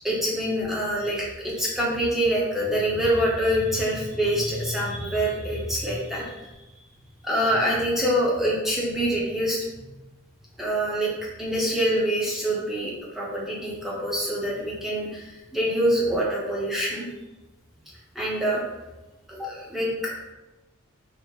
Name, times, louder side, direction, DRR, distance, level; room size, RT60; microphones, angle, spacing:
voice 1, 0.0-6.5 7.2-9.6 10.6-11.1 11.4-17.1 18.1-18.6 19.3-20.1, equal, ahead, -5 dB, 0.7 m, -25 dB
3.5 x 2.1 x 3.1 m, 1.0 s
head